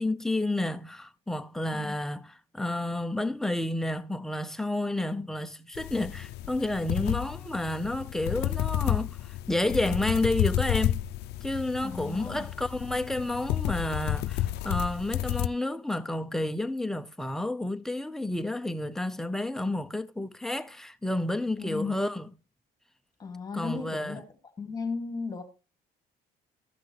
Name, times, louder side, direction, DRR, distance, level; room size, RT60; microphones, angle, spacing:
voice 1, 0.0-9.2 9.5-11.0 11.4-22.3 23.5-24.2, left 1 dB, 5° left, 0.6 m, -30 dB
sound 1, 5.8-15.5, left 13 dB, 80° left, 0.4 m, -31 dB
voice 2, 11.8-12.5 21.6-22.0 23.2-24.2 24.6-25.4, left 4 dB, 25° left, 2.4 m, -35 dB
14.5 x 6.0 x 3.3 m
cardioid pair, 110°, 17 cm